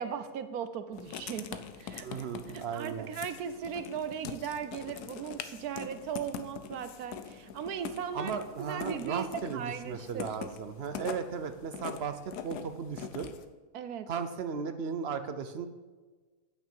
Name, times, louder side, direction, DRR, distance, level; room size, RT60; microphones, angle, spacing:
voice 1, 0.0-2.3 2.5-8.3 8.6-10.3 13.7-14.1, right 7 dB, 75° right, 10 dB, 1.2 m, -38 dB
Writing, 0.9-13.5, left 8 dB, 85° left, 1.2 m, -43 dB
voice 2, 2.0-3.1 8.1-13.3 14.1-15.7, right 6 dB, 55° right, 9 dB, 0.7 m, -36 dB
9.5 x 6.0 x 7.0 m, 1.3 s
omnidirectional pair, 1.6 m